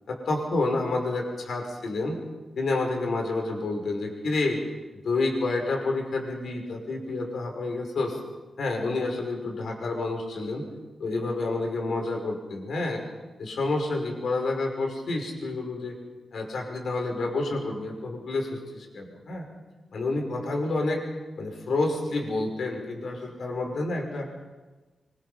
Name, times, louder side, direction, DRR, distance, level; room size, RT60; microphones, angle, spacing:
voice 1, 0.1-2.2 2.6-4.6 5.0-8.2 8.6-10.6 11.0-13.0 13.4-16.0 16.3-19.5 19.9-21.1 21.4-24.3, left 2 dB, 70° left, 2 dB, 5.7 m, -29 dB
25.5 x 24.5 x 5.8 m, 1.2 s
wide cardioid pair, 130°, 0 cm